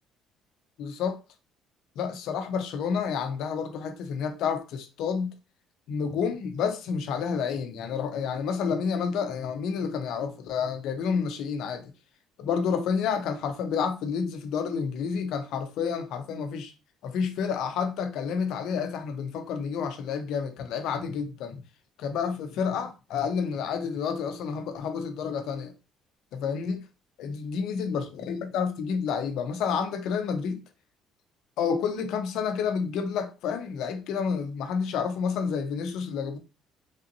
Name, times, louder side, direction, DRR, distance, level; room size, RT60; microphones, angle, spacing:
voice 1, 0.8-1.2 2.0-5.3 5.9-11.9 12.4-16.7 17.0-21.6 22.0-25.7 26.3-26.8 27.2-30.6 31.6-36.4, left 6 dB, 70° left, 0.6 m, -29 dB
3.3 x 2.6 x 2.7 m
cardioid pair, 140°, 0 cm